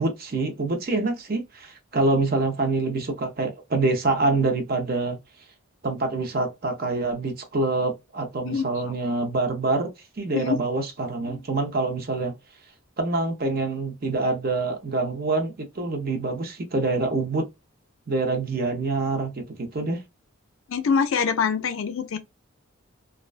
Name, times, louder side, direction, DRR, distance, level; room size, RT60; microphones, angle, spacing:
voice 1, 0.0-5.2 5.8-9.9 10.2-12.3 13.0-17.4 18.1-20.0, right 3 dB, 45° right, 0.6 m, -26 dB
voice 2, 20.7-22.2, left 6 dB, 65° left, 0.4 m, -24 dB
2.4 x 2.1 x 2.4 m
head